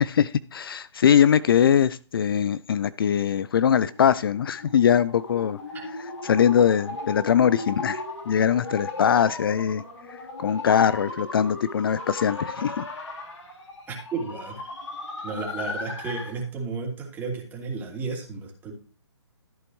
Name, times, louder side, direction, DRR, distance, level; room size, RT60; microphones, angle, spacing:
voice 1, 0.0-5.6 6.2-9.8 10.1-12.8, left 8 dB, 50° left, 17 dB, 0.5 m, -22 dB
sound 1, 3.9-16.4, left 2 dB, 85° left, 3.6 m, -36 dB
voice 2, 13.9-14.6 15.2-18.7, right 4 dB, 15° right, -1 dB, 3.0 m, -33 dB
14.0 x 8.3 x 3.1 m, 0.39 s
hypercardioid pair, 145°, 15 cm